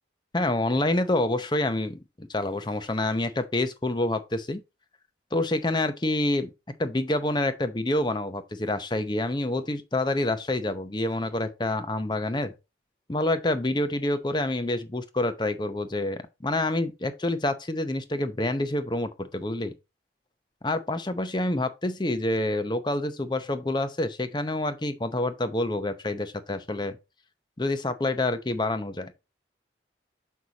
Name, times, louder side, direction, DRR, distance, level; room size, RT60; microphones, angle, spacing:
voice 1, 0.3-4.6 5.3-6.5 6.8-12.5 13.1-19.7 20.6-27.0 27.6-29.1, left 1 dB, 25° left, 0.7 m, -27 dB
6.4 x 5.5 x 4.0 m
head